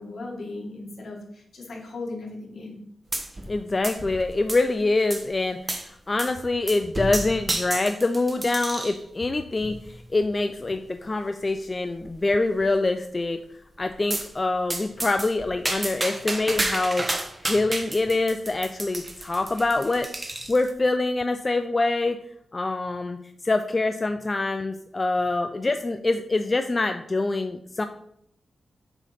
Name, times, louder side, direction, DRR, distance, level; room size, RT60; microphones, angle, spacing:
voice 1, 0.0-2.8, left 2 dB, 65° left, -1 dB, 1.9 m, -37 dB
sound 1, 3.1-3.6 3.8-4.7 5.1-5.3 5.7-5.9 6.2-6.4 6.7-9.0 9.6-10.0 10.6-10.7 11.0-11.1 11.4-11.5 12.0-12.4 14.1-14.3 14.7-20.7, right 2 dB, 25° right, 0.9 m, -31 dB
voice 2, 3.5-13.4 13.8-17.1 17.4-20.1 20.5-22.2 22.5-27.9, left 2 dB, 30° left, 7 dB, 0.4 m, -25 dB
7.8 x 3.1 x 5.8 m, 0.72 s
cardioid pair, 90°, 0 cm